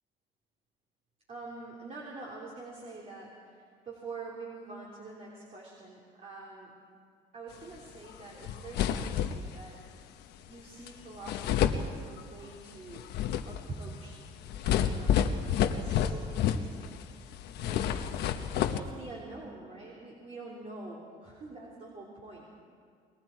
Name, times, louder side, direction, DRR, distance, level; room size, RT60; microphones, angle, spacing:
voice 1, 1.3-6.7 7.3-9.8 10.5-13.1 13.5-18.0 18.5-22.5, right 3 dB, 40° right, -4 dB, 3.8 m, -46 dB
sound 1, 8.1-8.2 8.4-9.6 10.9-11.0 11.2-12.5 12.9-17.1 17.3-18.8, left 9 dB, 80° left, 1.1 m, -29 dB
29.0 x 21.0 x 4.7 m, 2.1 s
cardioid pair, 110°, 17 cm